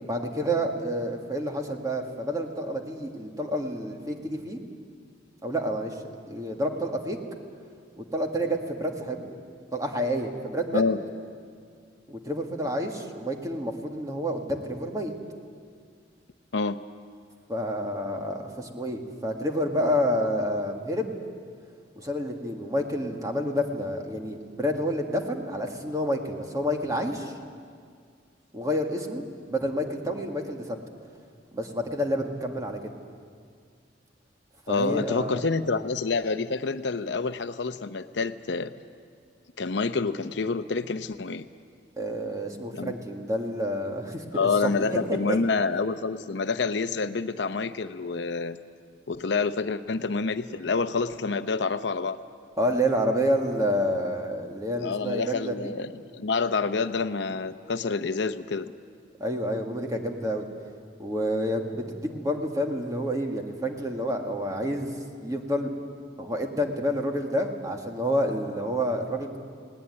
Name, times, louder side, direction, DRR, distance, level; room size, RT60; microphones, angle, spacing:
voice 1, 0.0-4.6 5.4-5.9 6.3-7.2 8.0-9.3 9.7-10.8 12.1-15.1 17.5-21.2 22.0-27.3 28.5-30.8 31.5-32.9 34.7-35.4 42.0-45.4 52.6-55.7 59.2-60.5 61.0-65.7 66.2-69.4, equal, 20° right, 2 dB, 2.0 m, -29 dB
voice 2, 34.7-38.7 39.6-41.5 42.7-43.0 44.3-48.6 49.1-52.2 54.8-58.7, left 4 dB, 70° left, 10 dB, 0.7 m, -28 dB
20.0 x 18.5 x 9.8 m, 2.2 s
head